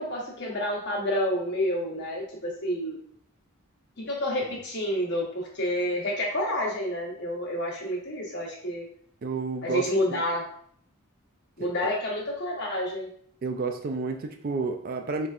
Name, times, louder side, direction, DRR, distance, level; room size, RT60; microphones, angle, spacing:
voice 1, 0.0-3.0 4.1-8.9 9.6-10.5 11.6-13.1, left 1 dB, 50° left, -2 dB, 1.1 m, -29 dB
voice 2, 9.2-10.2 11.6-11.7 13.4-15.3, right 4 dB, 40° right, 5 dB, 0.3 m, -31 dB
4.2 x 3.3 x 2.4 m, 0.62 s
head